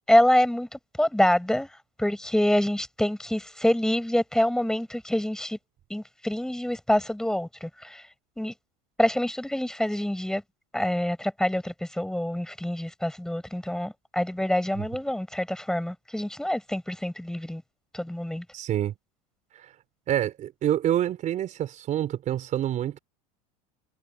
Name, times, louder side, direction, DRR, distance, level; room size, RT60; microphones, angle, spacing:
voice 1, 0.1-5.6 5.9-8.0 8.4-8.5 9.0-10.4 10.7-17.6 17.9-18.4, left 1 dB, 5° left, 7.9 m, -26 dB
voice 2, 18.5-18.9 19.5-19.7 20.1-23.0, right 11 dB, 45° right, 4.6 m, -27 dB
supercardioid pair, 115°, 18 cm